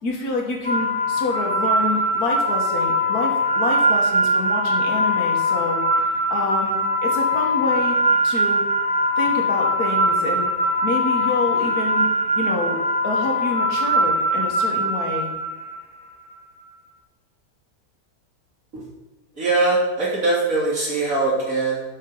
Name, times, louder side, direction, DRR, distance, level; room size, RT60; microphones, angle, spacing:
voice 1, 0.0-5.8 6.3-8.0 8.2-8.7 9.2-10.5 10.8-12.1 12.3-12.8 13.0-15.3, left 2 dB, 70° left, 0 dB, 2.1 m, -27 dB
sound 1, 0.6-15.8, equal, 10° left, 0.5 m, -21 dB
voice 2, 19.3-22.0, right 2 dB, 55° right, -5 dB, 3.3 m, -22 dB
11.5 x 6.4 x 4.0 m, 1.1 s
omnidirectional pair, 1.7 m